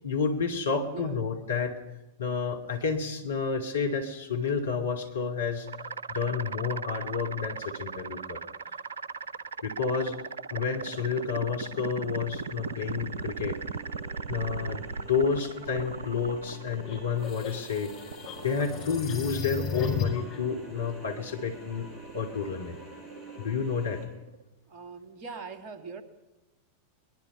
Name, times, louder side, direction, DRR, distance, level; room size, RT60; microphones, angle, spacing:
voice 1, 0.0-1.8 2.2-5.7 6.1-8.4 9.6-10.2 10.5-13.6 14.3-17.9 18.4-21.9 22.1-22.8 23.4-24.0, left 5 dB, 70° left, 4 dB, 2.6 m, -30 dB
voice 2, 0.8-1.1 24.7-26.0, right 4 dB, 35° right, 7 dB, 2.6 m, -41 dB
sound 1, 5.7-24.4, right 4 dB, 70° right, 0.7 m, -39 dB
sound 2, 10.7-24.1, left 1 dB, 5° right, 6.8 m, -49 dB
sound 3, 16.9-20.4, left 6 dB, 40° left, 4.9 m, -35 dB
23.0 x 21.0 x 5.6 m, 1.0 s
figure-of-eight pair, 90°, 0 cm